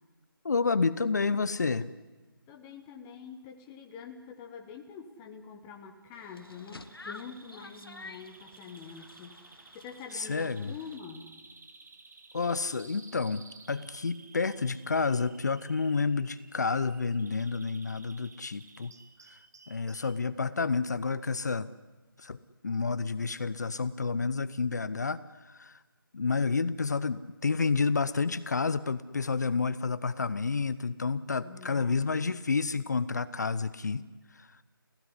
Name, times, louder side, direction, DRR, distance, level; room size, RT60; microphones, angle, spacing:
voice 1, 0.4-1.9 10.1-10.7 12.3-18.9 19.7-21.7 22.2-22.4 22.6-25.2 25.4-25.8 26.1-34.0 34.3-34.5, left 4 dB, 50° left, 16 dB, 0.8 m, -30 dB
voice 2, 2.5-9.4 9.7-11.3 31.4-32.3, left 6 dB, 10° left, 4 dB, 1.0 m, -46 dB
sound 1, 6.1-11.0, left 3 dB, 80° left, 1.6 m, -50 dB
Bird vocalization bird call bird song, 6.2-20.2, right 4 dB, 45° right, 1.8 m, -55 dB
28.5 x 16.0 x 9.8 m, 1.3 s
figure-of-eight pair, 170°, 12 cm